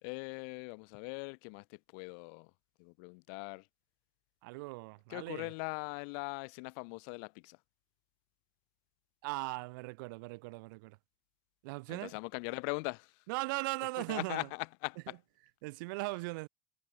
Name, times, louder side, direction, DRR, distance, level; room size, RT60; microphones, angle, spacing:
voice 1, 0.0-2.5 2.8-3.7 5.1-7.6 11.9-13.1 14.0-15.2, left 40 dB or more, 65° left, 0.7 m, -41 dB
voice 2, 4.4-5.5 9.2-11.0 11.6-12.1 13.3-14.5 15.6-16.5, right 26 dB, 65° right, 0.5 m, -39 dB
figure-of-eight pair, 65°, 12 cm